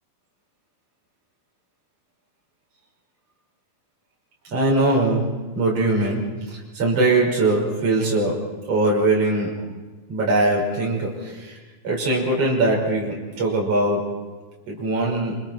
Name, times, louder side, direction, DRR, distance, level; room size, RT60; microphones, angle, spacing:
voice 1, 4.5-5.3 5.5-9.5 10.1-11.6 11.8-14.2 14.7-15.4, right 2 dB, 30° right, -2 dB, 6.3 m, -21 dB
28.5 x 25.0 x 4.6 m, 1.3 s
omnidirectional pair, 5.5 m